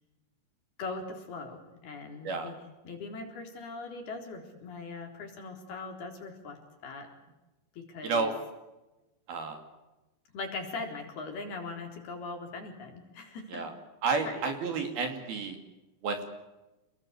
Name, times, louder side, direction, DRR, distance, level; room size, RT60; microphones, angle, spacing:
voice 1, 0.8-7.1 7.7-8.3 10.3-13.7 14.2-14.5 14.7-14.9, left 3 dB, 55° left, 3 dB, 5.6 m, -41 dB
voice 2, 8.0-8.3 9.3-9.6 13.5-13.7 14.0-15.6 16.0-16.2, right 4 dB, 55° right, 6 dB, 4.3 m, -30 dB
29.0 x 20.5 x 8.3 m, 1.0 s
omnidirectional pair, 5.6 m